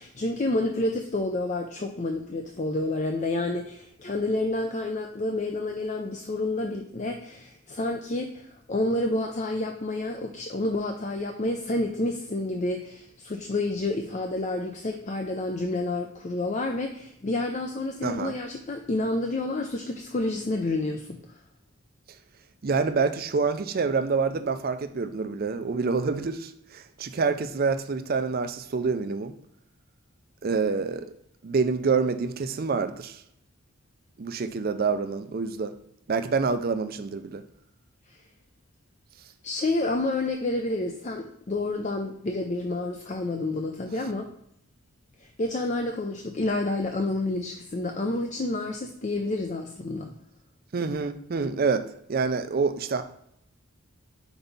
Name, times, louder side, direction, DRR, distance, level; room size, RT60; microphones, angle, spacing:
voice 1, 0.0-21.4 38.1-38.2 39.4-44.3 45.2-50.1, left 2 dB, 35° left, 0.5 m, -29 dB
voice 2, 18.0-18.3 22.6-29.3 30.4-31.1 31.4-33.2 34.2-35.7 36.1-37.4 50.7-53.0, right 4 dB, 45° right, 0.4 m, -27 dB
4.5 x 4.0 x 5.3 m
head